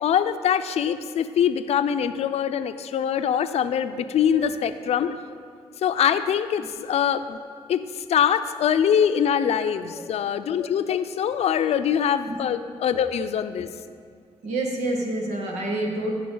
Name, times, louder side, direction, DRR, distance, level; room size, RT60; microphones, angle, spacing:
voice 1, 0.0-5.2 5.8-7.4 7.7-13.7, left 8 dB, 70° left, 10 dB, 0.5 m, -23 dB
voice 2, 14.4-16.2, right 1 dB, 85° right, 1 dB, 1.5 m, -28 dB
15.0 x 5.8 x 3.9 m, 2.2 s
cardioid pair, 80°, 11 cm